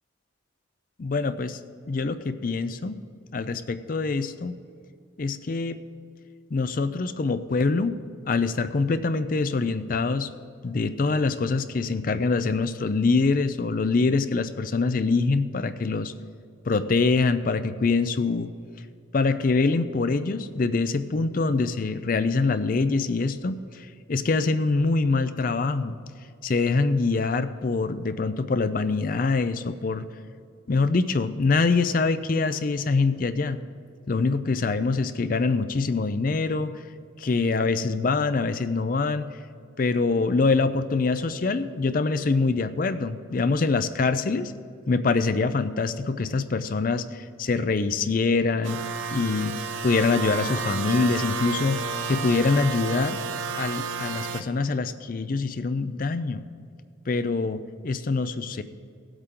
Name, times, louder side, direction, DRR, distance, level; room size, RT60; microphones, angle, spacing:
voice 1, 1.0-1.6 1.9-3.0 3.3-4.6 5.2-5.8 6.5-8.0 8.3-10.3 10.6-16.1 16.7-18.5 19.1-26.0 26.4-30.1 30.7-33.6 34.1-36.7 37.2-39.3 39.8-44.5 44.9-48.8 49.1-49.5 49.8-53.2 53.6-56.4 57.1-58.6, left 3 dB, 45° left, 11 dB, 0.4 m, -24 dB
sound 1, 48.6-54.4, right 5 dB, 85° right, 0.7 m, -31 dB
18.0 x 8.0 x 3.8 m, 2.4 s
head